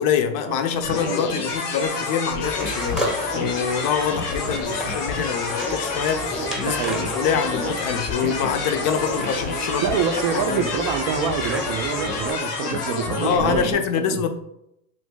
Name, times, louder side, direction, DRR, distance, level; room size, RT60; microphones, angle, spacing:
voice 1, 0.0-3.1 3.3-9.9 10.5-10.7 13.2-14.3, left 7 dB, 45° left, 0.5 m, -25 dB
sound 1, 0.8-13.7, left 3 dB, 90° left, 0.9 m, -28 dB
sound 2, 2.4-12.3, equal, ahead, 0.7 m, -34 dB
voice 2, 6.6-7.2 9.8-14.2, right 7 dB, 45° right, 0.4 m, -26 dB
2.9 x 2.6 x 3.5 m
hypercardioid pair, 80°, 45 cm